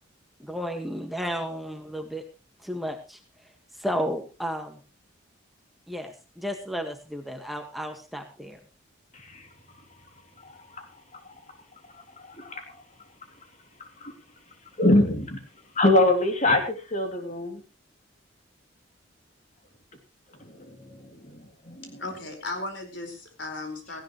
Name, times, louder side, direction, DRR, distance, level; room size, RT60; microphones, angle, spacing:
voice 1, 0.4-2.2 2.6-3.2 3.8-4.8 5.9-8.6, equal, ahead, 4 dB, 1.6 m, -33 dB
voice 2, 10.4-10.9 12.4-12.6 14.0-14.1 14.8-15.4 15.8-17.6 20.7-21.2 21.7-22.0, left 2 dB, 35° left, 5 dB, 2.7 m, -23 dB
voice 3, 22.0-24.0, left 2 dB, 60° left, 4 dB, 4.7 m, -36 dB
18.0 x 16.0 x 3.1 m, 0.30 s
head